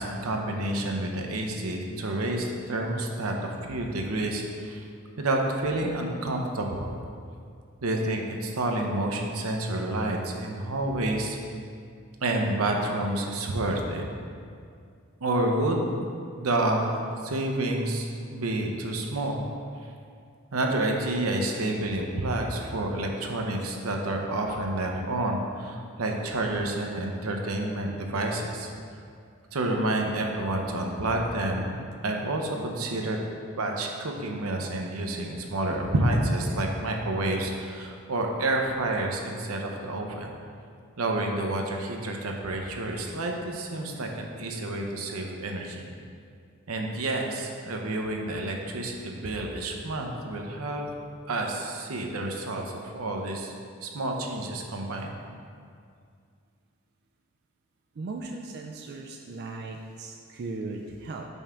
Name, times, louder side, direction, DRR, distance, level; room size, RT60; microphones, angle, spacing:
voice 1, 0.0-4.8 5.2-6.9 7.8-11.4 12.2-14.0 15.2-15.9 16.4-19.4 20.5-28.7 29.5-31.8 32.0-33.2 33.5-40.3 41.0-45.9 46.7-50.9 51.3-53.5 53.8-55.2, right 1 dB, 85° right, 2 dB, 0.7 m, -29 dB
voice 2, 58.0-61.3, right 3 dB, 50° right, 1 dB, 0.4 m, -37 dB
5.4 x 3.6 x 5.7 m, 2.3 s
head